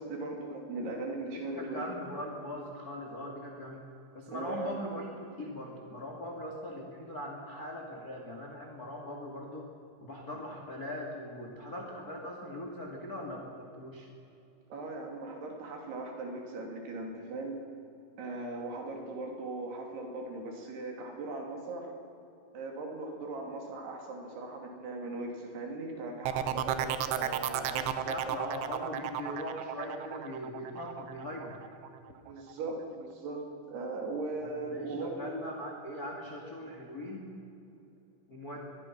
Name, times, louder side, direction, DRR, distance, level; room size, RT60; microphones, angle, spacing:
voice 1, 0.0-1.9 4.3-4.8 14.7-17.6 18.2-21.9 22.5-28.4 32.2-35.5, right 2 dB, 55° right, 2 dB, 4.2 m, -39 dB
voice 2, 1.5-3.8 4.1-9.7 10.0-14.1 27.9-31.6 34.4-37.3 38.3-38.7, left 1 dB, 50° left, 1 dB, 1.0 m, -40 dB
sound 1, 26.3-31.9 32.3-32.7, right 11 dB, 75° right, 2.6 m, -33 dB
23.5 x 21.5 x 6.1 m, 2.8 s
omnidirectional pair, 5.9 m